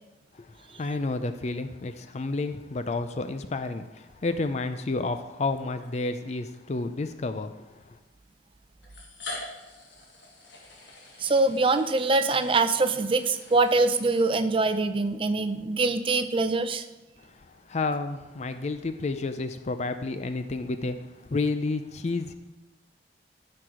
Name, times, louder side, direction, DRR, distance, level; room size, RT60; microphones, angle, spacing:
voice 1, 0.3-8.0 17.2-22.3, left 3 dB, 40° left, 9 dB, 0.4 m, -31 dB
sound 1, 5.4-5.5 6.5-6.6 7.8-7.9 8.8-14.8, left 2 dB, 75° left, 1.7 m, -44 dB
voice 2, 11.2-16.8, right 3 dB, 30° right, 11 dB, 0.5 m, -24 dB
12.5 x 4.7 x 4.9 m, 1.1 s
head